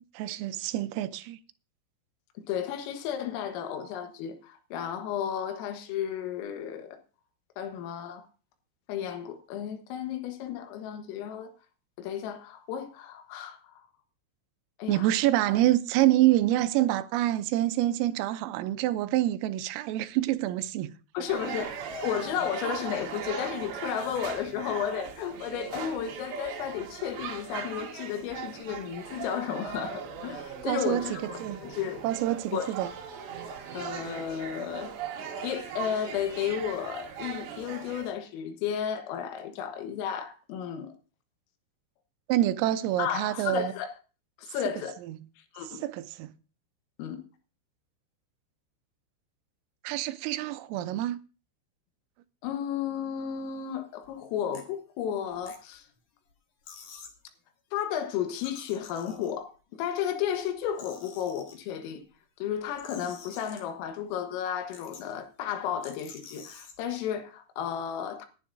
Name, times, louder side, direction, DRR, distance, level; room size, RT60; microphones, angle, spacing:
voice 1, 0.0-1.4 14.9-20.9 30.7-31.0 31.4-31.6 32.0-32.9 42.3-43.7 45.1-45.2 45.8-46.3 49.8-51.2, right 14 dB, 85° right, 3.4 m, -26 dB
voice 2, 2.4-7.0 7.6-8.3 8.9-11.5 12.0-13.9 14.8-15.1 15.5-15.6 21.1-32.1 32.5-32.7 33.5-34.9 35.4-40.9 43.0-44.0 44.4-45.0 45.5-45.8 47.0-47.2 52.4-55.9 57.7-62.0 62.4-68.3, left 9 dB, 80° left, 3.9 m, -33 dB
sound 1, 21.3-38.1, right 7 dB, 65° right, 3.6 m, -39 dB
sound 2, 53.9-54.1 54.5-54.6 55.2-56.0 56.3-56.4 56.6-57.2 58.3-59.6 60.2-61.6 62.5-63.9 64.3-64.4 64.7-65.2 65.8-66.8, left 6 dB, 55° left, 2.8 m, -49 dB
19.5 x 11.0 x 2.7 m
omnidirectional pair, 5.9 m